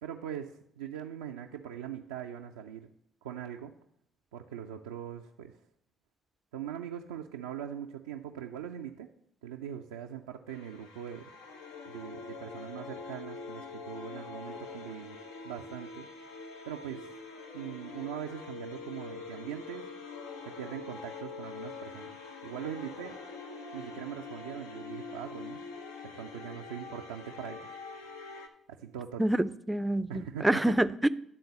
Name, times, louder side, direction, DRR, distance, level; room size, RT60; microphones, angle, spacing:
voice 1, 0.0-2.9 3.2-3.7 4.3-5.6 6.5-9.1 9.4-11.3 11.9-15.2 15.4-16.1 16.7-17.1 17.5-19.8 20.5-22.1 22.4-23.1 23.7-25.6 26.0-27.7 28.7-29.2 30.1-30.7, right 9 dB, 80° right, 1 dB, 0.4 m, -41 dB
sound 1, 10.5-28.5, left 4 dB, 80° left, 0.7 m, -44 dB
voice 2, 29.2-31.1, right 1 dB, 10° right, 15 dB, 0.4 m, -27 dB
11.0 x 3.8 x 6.8 m, 0.73 s
hypercardioid pair, 50°, 0 cm